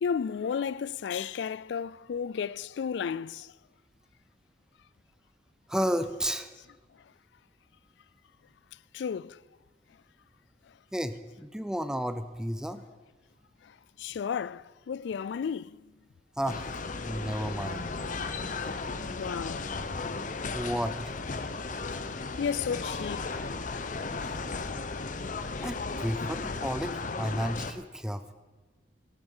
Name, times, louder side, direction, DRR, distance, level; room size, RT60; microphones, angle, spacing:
voice 1, 0.0-3.5 8.9-9.4 14.0-15.8 19.2-19.7 22.4-23.3 24.3-24.4, left 6 dB, 70° left, 0.3 m, -33 dB
voice 2, 5.7-6.5 10.9-12.8 16.4-16.7 17.0-17.9 20.5-21.0 25.6-28.3, equal, 5° right, 0.5 m, -32 dB
sound 1, 16.5-27.7, left 3 dB, 45° left, 0.7 m, -35 dB
13.0 x 12.5 x 5.5 m
head